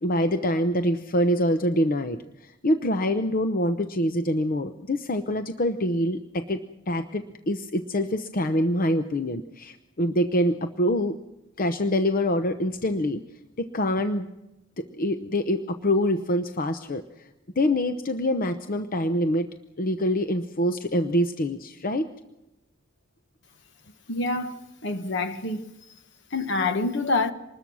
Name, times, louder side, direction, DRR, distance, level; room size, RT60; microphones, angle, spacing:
voice 1, 0.0-11.2 11.6-13.2 13.6-14.3 14.8-17.3 17.6-19.5 19.8-22.1, equal, 45° left, 0.8 m, -25 dB
voice 2, 24.1-25.7 26.3-27.3, left 3 dB, 60° left, 1.3 m, -27 dB
25.5 x 20.5 x 6.2 m
head